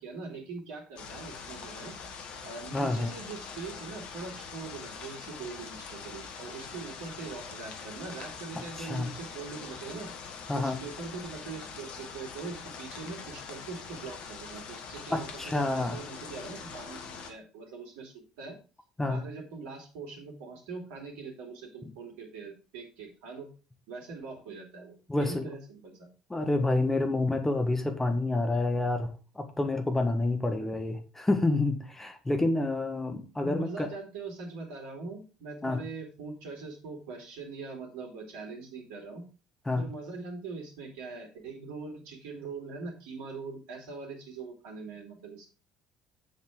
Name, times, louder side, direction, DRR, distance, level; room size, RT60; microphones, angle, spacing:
voice 1, 0.0-1.9 2.4-10.1 10.5-18.6 19.1-23.5 23.9-26.1 30.5-30.7 33.4-39.2 39.8-45.5, right 4 dB, 60° right, 1 dB, 2.9 m, -42 dB
sound 1, 1.0-17.3, left 5 dB, 55° left, 1.5 m, -43 dB
voice 2, 2.7-3.1 8.8-9.1 10.5-10.8 15.1-16.0 19.0-19.2 25.1-25.5 26.3-33.9 35.6-35.8 39.7-39.8, left 2 dB, 10° left, 5 dB, 1.6 m, -28 dB
8.4 x 7.6 x 3.7 m, 0.35 s
figure-of-eight pair, 55°, 2 cm